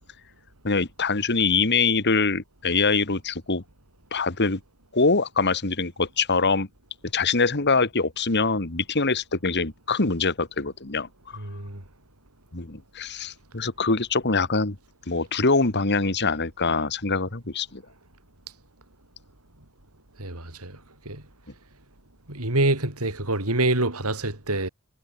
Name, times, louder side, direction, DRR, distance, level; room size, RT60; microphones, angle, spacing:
voice 1, 0.6-3.6 4.1-4.6 4.9-6.7 7.1-11.1 12.5-14.8 15.1-17.8, left 4 dB, 50° left, 2.1 m, -24 dB
voice 2, 11.4-11.8 20.2-20.8 21.1-21.2 22.3-24.7, right 2 dB, 85° right, 5.4 m, -26 dB
head